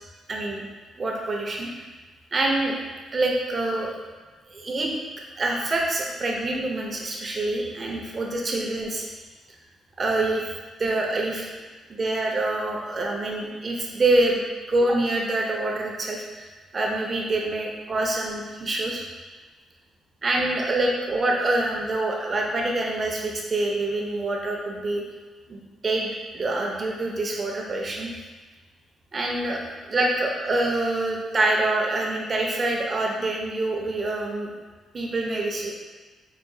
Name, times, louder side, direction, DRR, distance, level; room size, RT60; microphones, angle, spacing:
voice 1, 0.3-0.6 1.0-1.7 2.3-2.8 3.1-4.0 4.5-4.9 5.4-9.0 10.0-10.5 10.8-11.5 11.9-14.4 14.7-16.5 16.7-19.0 20.2-25.0 25.5-26.1 26.3-28.1 29.1-34.5 34.9-35.7, right 2 dB, 40° right, 0 dB, 0.7 m, -26 dB
4.7 x 2.5 x 2.7 m, 1.3 s
cardioid pair, 90°, 0 cm